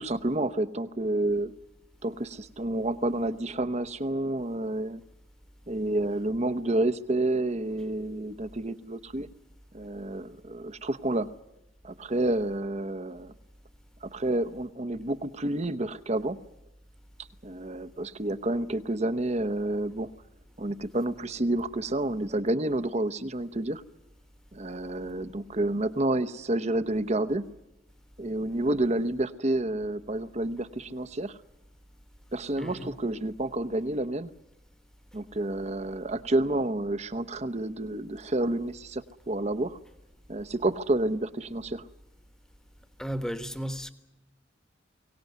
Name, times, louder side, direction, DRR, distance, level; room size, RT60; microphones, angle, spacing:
voice 1, 0.0-1.5 2.0-5.0 5.7-9.3 9.7-11.3 11.8-13.3 14.0-16.4 17.4-20.1 20.6-23.8 24.5-27.5 28.2-31.4 32.3-34.3 35.1-39.8 40.3-41.9, right 1 dB, 35° right, 0.9 m, -29 dB
voice 2, 32.6-32.9 43.0-43.9, equal, 5° left, 1.3 m, -34 dB
23.5 x 18.0 x 9.3 m
head